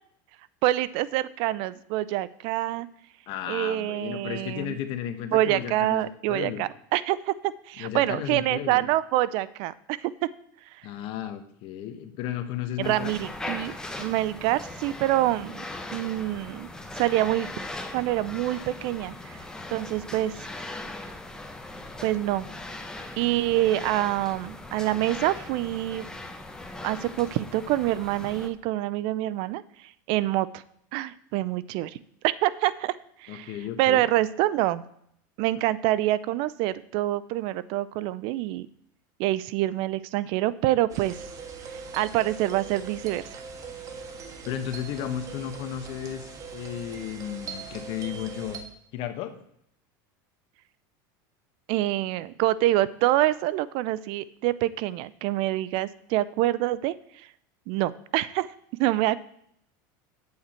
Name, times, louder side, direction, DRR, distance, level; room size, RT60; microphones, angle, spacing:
voice 1, 0.6-2.9 3.5-4.8 5.3-10.1 12.8-13.7 14.0-15.6 15.9-16.7 16.9-17.5 17.9-19.4 19.7-20.5 22.0-22.5 23.2-26.1 26.8-29.6 30.1-30.6 30.9-32.0 32.2-32.9 33.2-33.5 33.8-34.8 35.4-38.7 39.2-41.2 41.9-43.4 51.7-56.9 57.7-58.5 58.8-59.2, right 15 dB, 55° right, 18 dB, 0.5 m, -26 dB
voice 2, 3.3-6.7 7.8-8.9 10.8-13.1 33.3-34.1 44.4-48.6 48.9-49.3, left 10 dB, 50° left, 9 dB, 1.2 m, -34 dB
sound 1, 12.8-28.5, left 2 dB, 5° left, 0.9 m, -39 dB
sound 2, 40.9-48.6, right 5 dB, 30° right, 1.6 m, -41 dB
9.0 x 8.5 x 4.4 m, 0.70 s
supercardioid pair, 135°, 11 cm